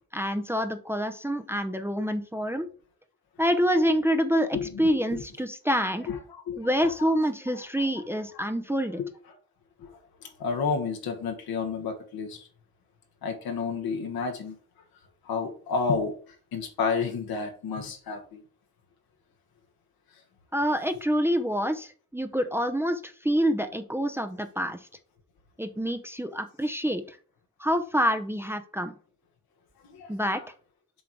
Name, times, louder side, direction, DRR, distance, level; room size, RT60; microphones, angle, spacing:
voice 1, 0.1-2.7 3.4-6.1 6.6-9.0 20.5-24.8 25.6-27.2 27.6-28.9 30.1-30.4, equal, 5° right, 0.7 m, -27 dB
voice 2, 4.5-5.2 6.1-7.1 7.5-7.6 8.3-8.5 9.0-9.1 9.8-9.9 10.4-12.4 13.2-14.5 15.3-16.1 16.5-18.4 29.8-30.5, left 5 dB, 75° left, 1.5 m, -31 dB
7.0 x 3.8 x 4.7 m
supercardioid pair, 55°, 36 cm